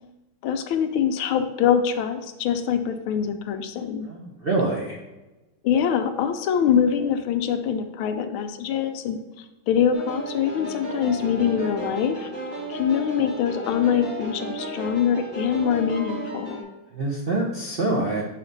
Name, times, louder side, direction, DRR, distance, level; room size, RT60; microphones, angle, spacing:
voice 1, 0.4-4.1 5.6-12.3 12.7-16.6, left 8 dB, 75° left, 8 dB, 1.4 m, -24 dB
voice 2, 4.1-5.0 16.9-18.2, right 2 dB, 70° right, -3 dB, 0.5 m, -25 dB
sound 1, 9.9-16.6, right 1 dB, 40° right, 2.7 m, -34 dB
5.0 x 5.0 x 5.2 m, 1.1 s
omnidirectional pair, 2.3 m